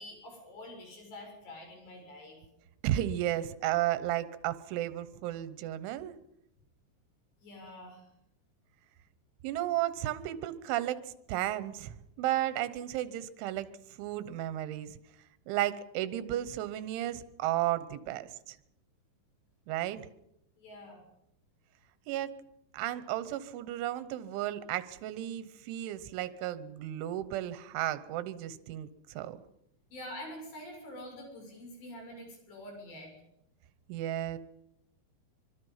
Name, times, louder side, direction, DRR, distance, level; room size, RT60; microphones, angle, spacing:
voice 1, 0.0-2.4 7.4-8.1 20.6-21.0 29.9-33.1, left 1 dB, 65° left, 2 dB, 9.1 m, -46 dB
voice 2, 2.8-6.2 9.4-13.7 14.0-15.0 15.5-18.6 19.7-20.1 22.1-22.3 22.7-29.4 33.9-34.4, right 13 dB, 85° right, 13 dB, 3.5 m, -33 dB
25.0 x 22.5 x 5.7 m, 0.81 s
omnidirectional pair, 5.4 m